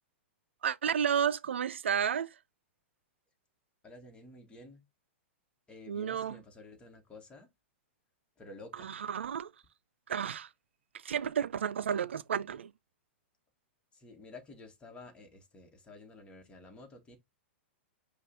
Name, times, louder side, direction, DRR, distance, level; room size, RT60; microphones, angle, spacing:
voice 1, 0.6-2.3 5.9-6.4 8.8-9.5 10.1-10.5 11.0-12.7, right 8 dB, 75° right, 0.4 m, -32 dB
voice 2, 3.8-4.8 5.7-7.5 8.4-9.0 13.9-17.2, left 2 dB, 15° left, 1.5 m, -51 dB
5.3 x 2.5 x 3.9 m
hypercardioid pair, 110°, 6 cm